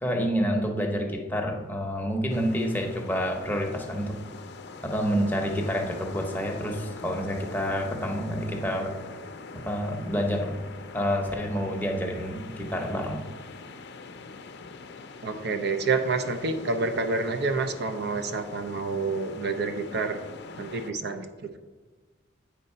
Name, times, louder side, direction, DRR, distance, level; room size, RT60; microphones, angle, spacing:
voice 1, 0.0-4.2 4.8-8.9 9.6-10.6 10.9-13.2, equal, 10° left, 1 dB, 0.8 m, -28 dB
sound 1, 2.3-20.9, left 4 dB, 55° left, 0.5 m, -43 dB
voice 2, 15.2-20.2 20.6-21.6, right 3 dB, 55° right, 7 dB, 0.6 m, -28 dB
8.7 x 3.9 x 5.5 m, 1.3 s
head